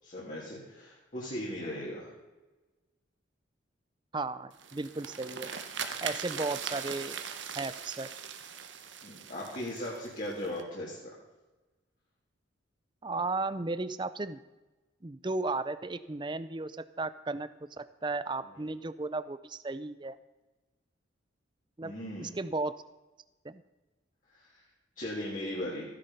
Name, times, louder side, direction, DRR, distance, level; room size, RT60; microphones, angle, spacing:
voice 1, 0.0-2.1 9.0-11.1 18.6-18.7 21.8-22.3 24.3-24.6 25.0-25.8, left 1 dB, 40° left, -6 dB, 2.9 m, -38 dB
voice 2, 4.1-5.5 6.0-7.2 7.6-8.1 13.0-14.4 15.0-17.5 17.8-20.2 21.8-21.9 22.2-22.7 23.4-23.6, right 3 dB, 25° right, 14 dB, 0.5 m, -35 dB
sound 1, 4.5-10.6, right 7 dB, 70° right, 1.2 m, -40 dB
15.5 x 10.0 x 5.6 m, 1.2 s
head